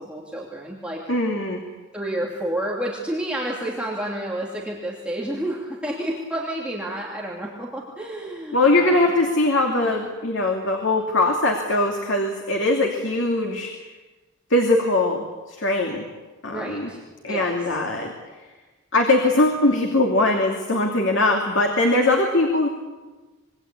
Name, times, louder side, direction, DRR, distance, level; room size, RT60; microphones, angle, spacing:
voice 1, 0.0-1.0 1.9-9.0 9.7-9.9 16.5-17.0 17.3-17.6, right 1 dB, 5° right, -3 dB, 2.7 m, -30 dB
voice 2, 1.1-1.6 8.5-13.7 14.5-16.0 16.4-16.9 17.2-18.1 18.9-22.7, left 2 dB, 60° left, 1 dB, 2.7 m, -21 dB
26.0 x 23.0 x 8.5 m, 1.3 s
head